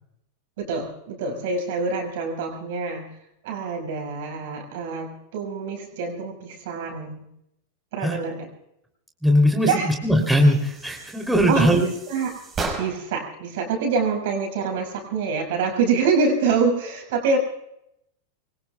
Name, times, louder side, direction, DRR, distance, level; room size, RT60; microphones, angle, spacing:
voice 1, 0.6-3.1 3.4-7.3 7.9-8.5 9.7-9.9 11.5-12.3 12.8-17.4, right 4 dB, 50° right, 4 dB, 5.7 m, -25 dB
voice 2, 9.2-11.8, equal, ahead, 2 dB, 3.1 m, -19 dB
sound 1, 10.1-13.2, right 3 dB, 20° right, 5.2 m, -35 dB
25.5 x 23.5 x 2.3 m, 0.80 s
figure-of-eight pair, 90°, 0 cm